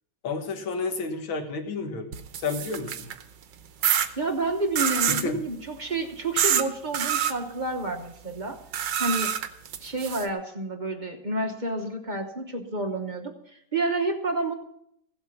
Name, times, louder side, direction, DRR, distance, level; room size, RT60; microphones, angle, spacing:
voice 1, 0.2-2.9 5.2-5.4, left 4 dB, 70° left, 6 dB, 2.2 m, -31 dB
sound 1, 2.1-3.2 3.8-4.1 4.8-5.3 6.4-6.6 6.9-7.3 8.7-10.3, right 9 dB, 65° right, 1.3 m, -26 dB
voice 2, 4.2-8.6 9.0-9.3 9.8-14.5, right 2 dB, 40° right, 4 dB, 0.7 m, -29 dB
15.5 x 8.0 x 5.9 m, 0.73 s
omnidirectional pair, 2.3 m